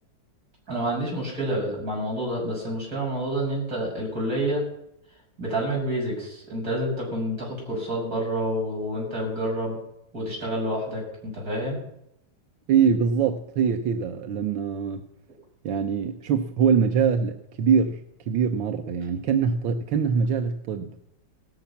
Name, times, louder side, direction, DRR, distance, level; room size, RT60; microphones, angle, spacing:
voice 1, 0.7-4.6 5.4-9.8 10.1-11.8, right 1 dB, 50° right, 7.8 m, -28 dB
voice 2, 12.7-15.1 15.6-21.0, right 6 dB, 85° right, 1.7 m, -23 dB
17.0 x 14.5 x 5.9 m
omnidirectional pair, 2.0 m